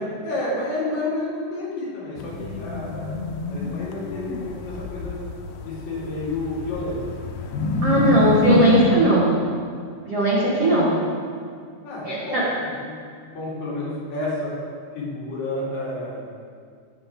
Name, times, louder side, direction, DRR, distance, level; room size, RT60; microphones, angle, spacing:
voice 1, 0.0-5.1 5.6-7.0 7.3-8.8 11.8-14.5 14.9-16.3, left 2 dB, 60° left, -8 dB, 4.8 m, -31 dB
sound 1, 2.2-8.9, left 2 dB, 80° left, 3.2 m, -27 dB
voice 2, 7.8-9.3 10.1-10.9 12.0-12.4, right 1 dB, 75° right, -6 dB, 1.4 m, -18 dB
17.5 x 7.4 x 3.8 m, 2.1 s
omnidirectional pair, 5.4 m